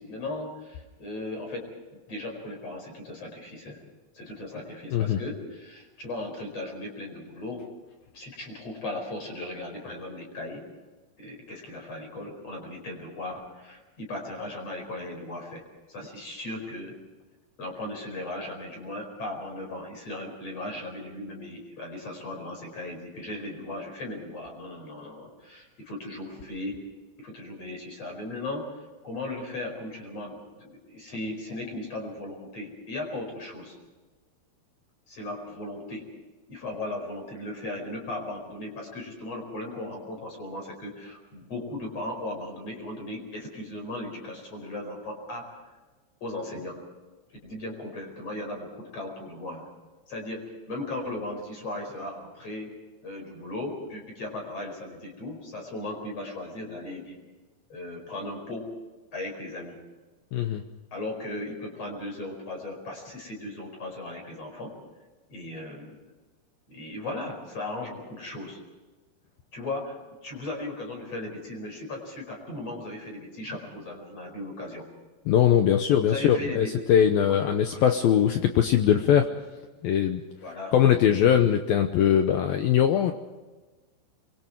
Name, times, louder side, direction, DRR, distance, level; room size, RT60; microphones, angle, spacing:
voice 1, 0.0-1.7 2.1-3.8 4.1-7.7 8.1-10.6 11.2-15.6 15.9-17.0 17.6-26.8 27.2-33.8 35.1-36.1 36.5-45.6 46.2-46.8 47.4-49.7 50.1-52.7 53.0-57.2 57.7-58.7 59.1-59.8 60.9-64.7 65.3-65.9 66.7-68.6 69.5-74.9 76.0-76.7 77.7-77.9 80.4-80.7, left 2 dB, 35° left, 2 dB, 5.6 m, -37 dB
voice 2, 60.3-60.6 75.3-79.3 79.8-80.2 80.7-83.1, left 9 dB, 75° left, 6 dB, 2.2 m, -21 dB
26.5 x 23.0 x 4.7 m, 1.3 s
omnidirectional pair, 5.3 m